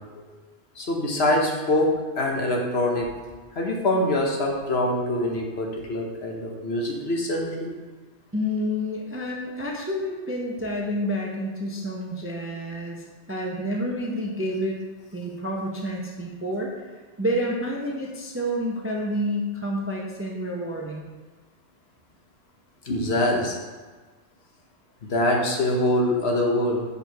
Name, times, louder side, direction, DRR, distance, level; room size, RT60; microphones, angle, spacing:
voice 1, 0.8-3.1 3.5-7.7 22.9-23.6 25.0-26.8, left 1 dB, 60° left, 0 dB, 1.2 m, -24 dB
voice 2, 8.3-14.8 15.1-21.1, equal, 15° right, -1 dB, 0.5 m, -29 dB
5.5 x 4.5 x 4.6 m, 1.4 s
omnidirectional pair, 1.2 m